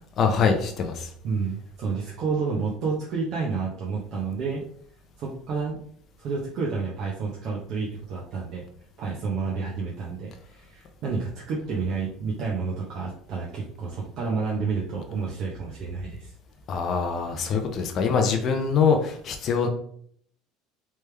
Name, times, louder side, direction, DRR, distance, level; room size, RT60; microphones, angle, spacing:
voice 1, 0.2-1.1 16.7-19.7, left 5 dB, 35° left, 4 dB, 0.5 m, -24 dB
voice 2, 1.2-4.6 5.2-5.8 6.2-8.6 9.0-16.3, right 4 dB, 45° right, -3 dB, 0.8 m, -30 dB
3.3 x 3.3 x 3.3 m, 0.63 s
cardioid pair, 150°, 0 cm